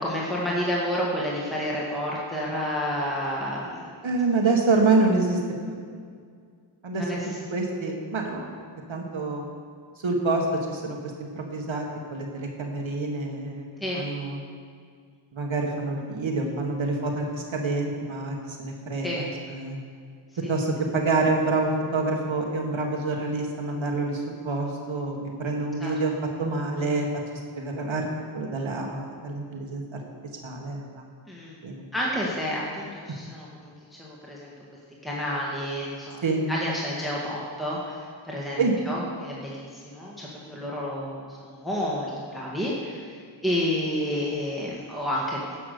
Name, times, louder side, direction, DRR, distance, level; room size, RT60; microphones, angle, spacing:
voice 1, 0.0-4.1 6.9-7.4 13.8-14.0 19.0-19.2 20.4-20.5 25.8-25.9 31.3-31.6 31.9-34.5 35.0-45.6, equal, ahead, -5 dB, 1.8 m, -30 dB
voice 2, 4.0-5.4 5.7-5.8 6.8-7.0 7.5-8.5 8.9-9.4 10.0-11.9 12.1-13.7 13.9-14.4 15.3-19.8 20.5-26.1 26.4-27.1 27.6-28.1 28.3-29.8 30.4-31.0 31.6-31.8 36.2-36.5 38.6-38.8, right 3 dB, 75° right, 1 dB, 1.4 m, -27 dB
10.0 x 6.1 x 6.6 m, 2.1 s
wide cardioid pair, 65°, 47 cm